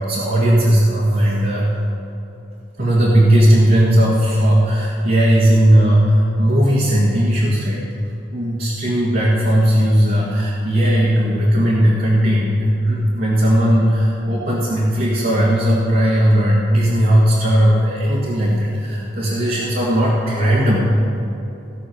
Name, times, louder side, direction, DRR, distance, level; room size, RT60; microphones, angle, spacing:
voice 1, 0.0-1.7 2.8-20.8, equal, 50° right, -6 dB, 1.8 m, -16 dB
16.5 x 6.1 x 6.4 m, 2.9 s
head